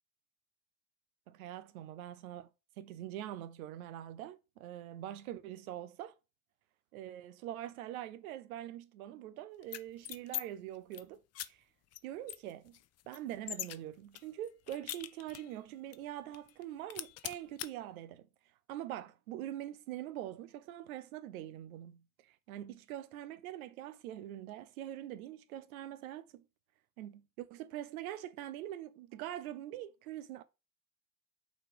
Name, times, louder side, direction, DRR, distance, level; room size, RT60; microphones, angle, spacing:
voice 1, 1.3-2.5 2.8-6.1 6.9-11.6 12.0-12.8 13.1-18.3 18.7-26.4 27.0-30.4, right 12 dB, 70° right, 0.8 m, -44 dB
sound 1, 9.6-10.4 10.7-11.0 11.3-11.5 11.9-12.0 12.3-13.8 14.1-15.6 15.9-16.0 16.3-16.6 16.9-17.7, left 13 dB, 35° left, 0.6 m, -42 dB
6.2 x 4.3 x 4.7 m
figure-of-eight pair, 60°, 44 cm